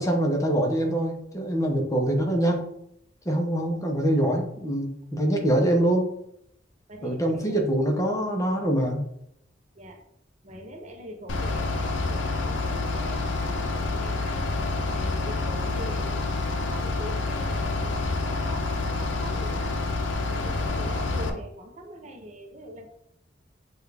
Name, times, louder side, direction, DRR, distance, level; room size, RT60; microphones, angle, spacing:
voice 1, 0.0-2.7 3.3-6.1 7.0-9.0, right 1 dB, 15° left, 2 dB, 0.6 m, -24 dB
voice 2, 6.9-7.6 9.8-10.0 10.4-14.4 14.9-19.8 20.3-22.9, equal, 40° right, 4 dB, 0.6 m, -42 dB
Bus / Idling, 11.3-21.3, left 3 dB, 70° left, 0.6 m, -28 dB
6.6 x 2.3 x 3.3 m, 0.75 s
head